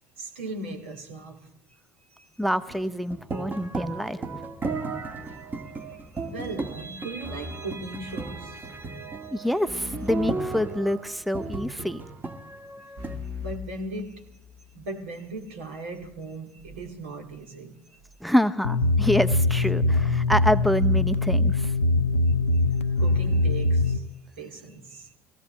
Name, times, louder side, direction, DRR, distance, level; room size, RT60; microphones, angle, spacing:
voice 1, 0.2-1.8 2.1-2.3 3.3-3.4 5.3-8.8 13.4-14.3 14.7-18.0 22.3-25.2, right 2 dB, 75° right, 2.3 m, -39 dB
voice 2, 2.4-4.4 9.3-12.0 18.2-21.7, equal, ahead, 0.6 m, -26 dB
sound 1, 2.7-13.2, right 3 dB, 25° right, 1.7 m, -35 dB
sound 2, 9.7-11.3 13.0-14.7, left 5 dB, 55° right, 5.2 m, -40 dB
sound 3, 18.6-24.0, left 2 dB, 85° left, 0.6 m, -22 dB
23.0 x 17.0 x 3.2 m
figure-of-eight pair, 65°, 7 cm